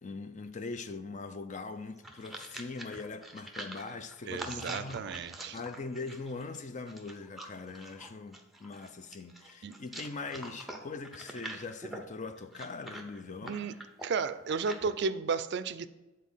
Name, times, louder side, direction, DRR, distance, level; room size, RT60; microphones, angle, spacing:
voice 1, 0.0-5.0 5.5-13.6, left 3 dB, 40° left, 0.5 m, -41 dB
sound 1, 1.8-14.9, right 1 dB, ahead, 0.7 m, -45 dB
voice 2, 4.3-5.6 9.6-9.7 13.4-13.7 14.0-15.9, right 5 dB, 60° right, 0.4 m, -33 dB
8.3 x 4.2 x 5.5 m
head